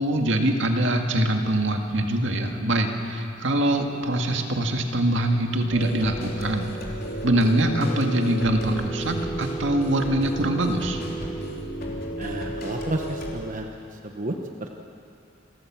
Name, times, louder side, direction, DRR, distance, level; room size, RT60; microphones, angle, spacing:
voice 1, 0.0-6.7 7.2-11.0, right 1 dB, 75° right, 3 dB, 1.9 m, -23 dB
sound 1, 5.7-13.3, right 1 dB, 55° left, 3.3 m, -33 dB
voice 2, 12.2-14.3 14.6-14.7, right 2 dB, 45° right, 2 dB, 1.1 m, -32 dB
28.5 x 14.0 x 7.4 m, 2.7 s
head